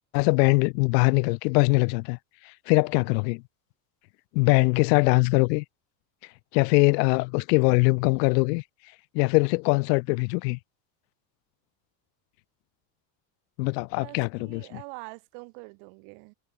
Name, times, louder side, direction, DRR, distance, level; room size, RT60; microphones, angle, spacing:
voice 1, 0.1-2.2 2.7-3.4 4.3-5.6 6.5-8.6 9.1-10.6 13.6-14.6, left 29 dB, 85° left, 0.7 m, -22 dB
voice 2, 14.0-16.3, right 40 dB or more, 60° right, 3.9 m, -44 dB
cardioid pair, 175°, 47 cm